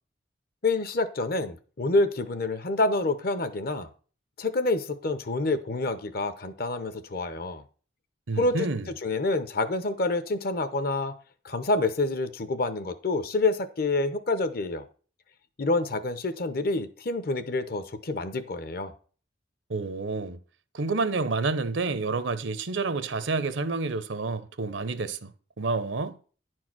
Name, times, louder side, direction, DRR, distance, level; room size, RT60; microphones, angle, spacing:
voice 1, 0.6-3.9 4.4-7.6 8.4-8.6 9.0-11.1 11.4-14.8 15.6-18.9, left 2 dB, 50° left, 0.9 m, -27 dB
voice 2, 8.3-8.9 19.7-20.4 20.7-26.2, right 3 dB, 80° right, 0.8 m, -29 dB
10.5 x 4.6 x 6.1 m
head